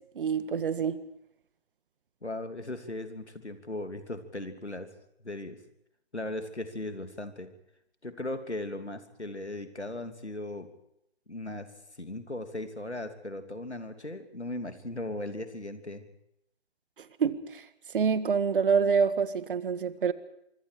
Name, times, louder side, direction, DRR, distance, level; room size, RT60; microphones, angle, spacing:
voice 1, 0.1-1.0 17.2-17.6 17.9-20.1, right 6 dB, 55° right, 1.8 m, -26 dB
voice 2, 2.2-4.9 5.2-5.6 6.1-7.5 8.0-10.7 11.3-11.7 12.0-16.1, left 1 dB, 90° left, 3.1 m, -37 dB
25.5 x 24.5 x 4.9 m
figure-of-eight pair, 135°, 33 cm